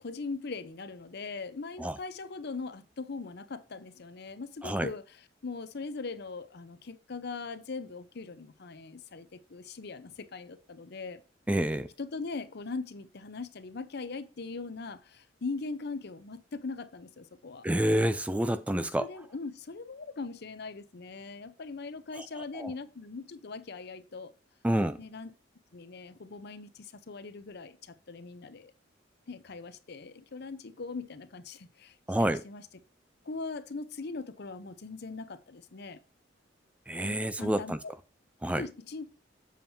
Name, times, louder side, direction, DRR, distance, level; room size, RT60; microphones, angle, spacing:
voice 1, 0.0-5.0 5.4-11.2 12.0-17.7 19.0-24.3 25.0-25.3 25.7-28.7 29.3-32.6 33.2-36.0 37.0-37.9 38.6-39.1, left 4 dB, 60° left, 0.7 m, -40 dB
voice 2, 11.5-11.9 17.6-19.1 22.2-22.7 24.6-25.0 32.1-32.4 36.9-37.8 38.4-38.6, right 1 dB, 5° right, 0.3 m, -28 dB
7.5 x 7.1 x 2.7 m
head